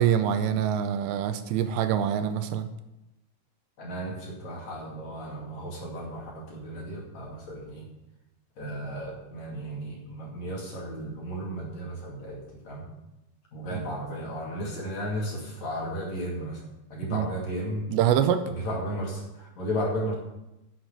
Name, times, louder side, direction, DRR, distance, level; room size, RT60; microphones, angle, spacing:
voice 1, 0.0-2.7 13.7-13.8 17.1-17.3 17.9-18.4, right 9 dB, 85° right, 9 dB, 2.8 m, -25 dB
voice 2, 3.8-7.9 8.6-12.9 13.5-16.6 16.9-17.9 18.4-20.2, equal, 45° left, -3 dB, 3.1 m, -34 dB
10.5 x 8.1 x 6.8 m, 0.92 s
omnidirectional pair, 5.2 m